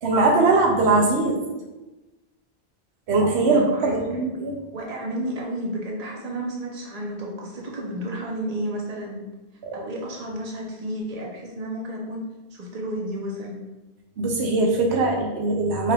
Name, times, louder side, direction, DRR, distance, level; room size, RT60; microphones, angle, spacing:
voice 1, 0.0-1.4 3.1-3.6 3.9-4.5 9.6-9.7 14.2-15.9, right 3 dB, 90° right, 1 dB, 1.0 m, -21 dB
voice 2, 3.5-4.2 4.7-9.2 9.7-12.2 12.5-13.6, right 1 dB, 40° right, -2 dB, 0.9 m, -32 dB
4.7 x 3.3 x 2.4 m, 1.1 s
omnidirectional pair, 1.1 m